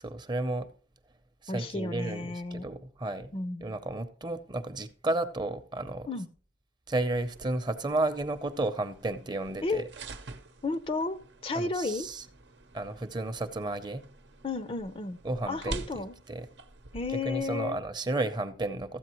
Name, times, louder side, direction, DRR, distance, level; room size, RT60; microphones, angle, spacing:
voice 1, 0.0-0.7 1.4-3.3 3.6-6.1 6.9-9.8 11.5-12.2 12.7-14.0 15.2-16.5 17.1-19.0, right 2 dB, 25° right, 0.6 m, -32 dB
voice 2, 1.5-2.7 3.3-3.7 6.1-6.3 9.6-9.8 10.6-12.1 14.4-15.2 15.5-16.1 16.9-17.8, left 3 dB, 30° left, 0.5 m, -32 dB
sound 1, 6.9-17.4, right 2 dB, 90° right, 0.8 m, -47 dB
13.5 x 8.1 x 3.0 m
head